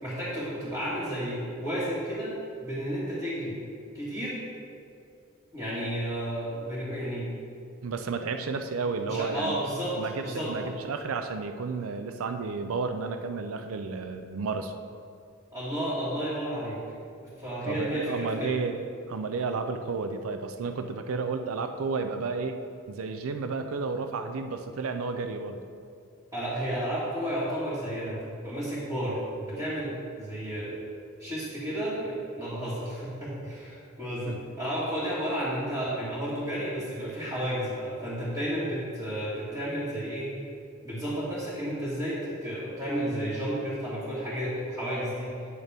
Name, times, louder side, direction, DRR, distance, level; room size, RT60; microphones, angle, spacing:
voice 1, 0.0-2.3 2.6-3.5 3.9-4.4 5.5-7.3 9.1-10.7 15.5-16.8 17.4-18.5 26.3-30.8 31.2-40.4 40.8-45.3, equal, 20° right, -12 dB, 2.0 m, -32 dB
voice 2, 7.8-9.6 10.0-14.7 17.6-18.8 19.1-22.6 22.9-25.6 34.3-34.4, right 4 dB, 75° right, 7 dB, 0.5 m, -32 dB
8.8 x 6.5 x 3.4 m, 2.4 s
head